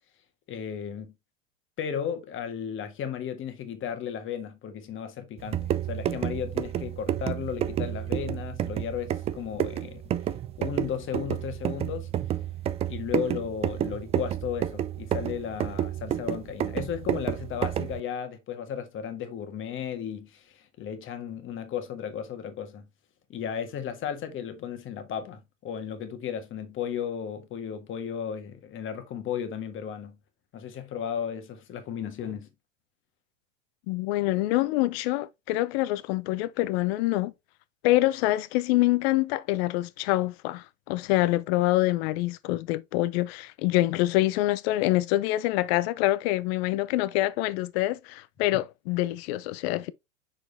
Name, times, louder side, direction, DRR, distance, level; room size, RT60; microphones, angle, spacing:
voice 1, 0.5-1.1 1.8-10.0 10.6-12.1 12.9-22.9 23.3-30.2 30.5-32.5, left 8 dB, 30° left, 1.6 m, -34 dB
sound 1, 5.4-18.0, right 10 dB, 15° right, 0.4 m, -30 dB
voice 2, 33.9-37.3 37.8-49.9, left 17 dB, 50° left, 0.7 m, -26 dB
6.3 x 4.9 x 3.4 m
hypercardioid pair, 115°, 39 cm